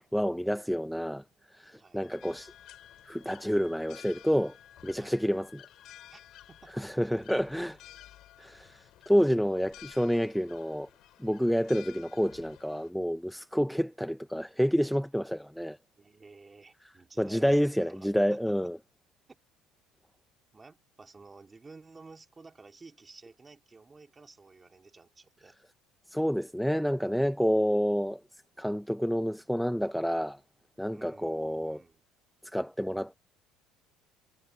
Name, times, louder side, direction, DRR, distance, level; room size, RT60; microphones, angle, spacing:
voice 1, 0.0-1.2 1.5-2.5 3.0-4.6 4.8-5.7 6.8-7.8 8.4-10.9 11.2-15.8 17.2-18.8 26.1-28.2 28.6-30.4 30.8-31.8 32.5-33.2, equal, ahead, 0.5 m, -29 dB
voice 2, 1.4-2.1 5.0-5.3 6.1-6.2 6.5-7.0 16.0-18.7 20.5-25.5 30.9-32.0, right 4 dB, 20° right, 2.6 m, -53 dB
Wind instrument woodwind instrument, 2.0-6.8, left 9 dB, 45° left, 5.1 m, -58 dB
sound 1, 2.2-12.9, left 14 dB, 60° left, 6.3 m, -54 dB
cardioid pair, 130°, 0 cm